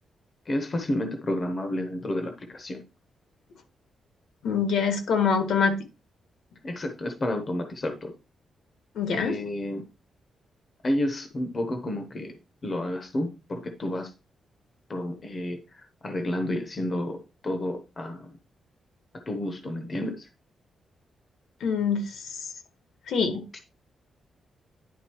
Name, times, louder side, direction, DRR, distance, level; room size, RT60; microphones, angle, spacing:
voice 1, 0.5-2.8 6.6-8.1 9.1-9.8 10.8-12.3 12.6-14.1 14.9-18.3 19.3-20.3 23.5-23.6, left 1 dB, 30° left, 6 dB, 0.9 m, -30 dB
voice 2, 4.4-5.8 8.9-9.3 21.6-22.5 23.1-23.6, left 5 dB, 70° left, 8 dB, 1.5 m, -25 dB
10.5 x 3.9 x 4.5 m, 0.30 s
wide cardioid pair, 165°, 0 cm